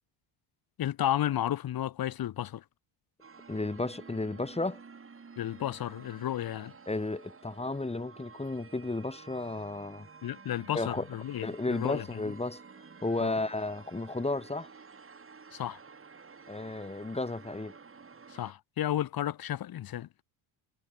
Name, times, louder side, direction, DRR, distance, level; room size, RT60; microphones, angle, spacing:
voice 1, 0.8-2.6 5.4-6.7 10.2-12.3 13.2-13.4 15.5-15.8 18.3-20.1, left 12 dB, 45° left, 1.3 m, -33 dB
sound 1, 3.2-18.5, right 5 dB, 25° right, 7.1 m, -52 dB
voice 2, 3.5-4.8 6.9-10.1 10.7-11.1 11.4-12.6 13.0-14.7 16.5-17.8, left 2 dB, 10° left, 3.4 m, -33 dB
cardioid pair, 105°, 49 cm